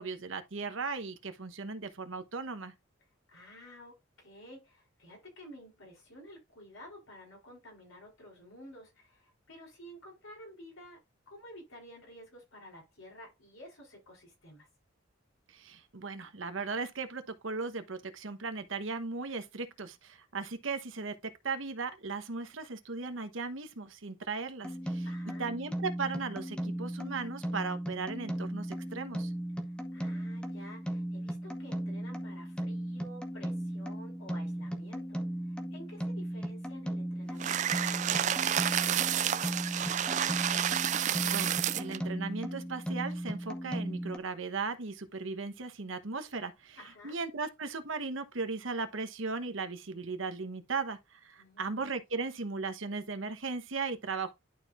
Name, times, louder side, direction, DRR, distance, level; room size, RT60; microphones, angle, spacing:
voice 1, 0.0-2.7 15.5-25.1 25.4-29.3 40.7-46.8 47.0-54.3, right 4 dB, 70° right, 1.0 m, -37 dB
voice 2, 3.3-14.7 25.0-25.5 29.5-40.1 46.8-47.2 51.4-51.8, equal, 80° left, 4.5 m, -52 dB
sound 1, 24.6-44.2, right 1 dB, 5° left, 0.8 m, -37 dB
sound 2, 37.4-42.0, right 10 dB, 35° right, 0.3 m, -30 dB
11.5 x 4.6 x 2.5 m
head